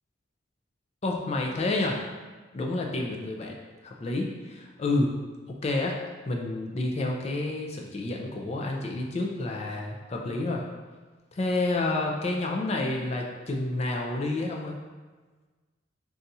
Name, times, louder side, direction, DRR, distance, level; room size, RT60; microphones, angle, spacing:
voice 1, 1.0-2.0 2.5-3.5 3.8-5.1 5.6-6.0 6.3-10.6 11.3-14.7, left 2 dB, 35° left, 0 dB, 0.4 m, -29 dB
2.6 x 2.3 x 4.0 m, 1.3 s
head